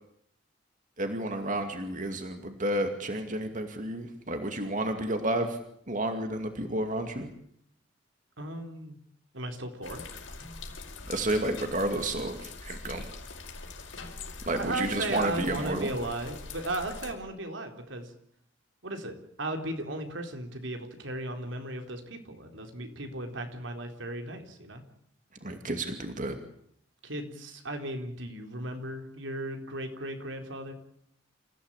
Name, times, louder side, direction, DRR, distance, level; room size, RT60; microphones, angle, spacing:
voice 1, 1.0-5.6 5.9-7.3 11.1-13.1 14.5-15.9 25.4-26.4, right 1 dB, 45° right, 6 dB, 2.4 m, -31 dB
voice 2, 8.4-9.0 9.3-10.0 14.5-18.1 18.8-24.8 27.0-30.7, right 1 dB, 80° right, 5 dB, 4.1 m, -36 dB
sound 1, 9.8-17.1, left 3 dB, 90° left, 5.3 m, -43 dB
28.0 x 16.0 x 8.9 m, 0.70 s
head